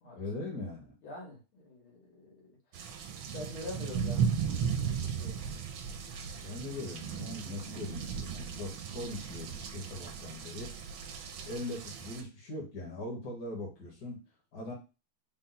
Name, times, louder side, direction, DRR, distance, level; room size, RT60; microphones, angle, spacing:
voice 1, 0.1-0.9 6.4-10.7 11.5-14.2 14.5-14.7, left 2 dB, 50° left, -2 dB, 1.7 m, -40 dB
voice 2, 1.0-3.0 3.3-5.6, left 2 dB, 85° left, -1 dB, 2.2 m, -46 dB
sound 1, 2.7-12.2, right 7 dB, 85° right, 1.4 m, -36 dB
4.2 x 2.3 x 3.9 m, 0.31 s
omnidirectional pair, 2.2 m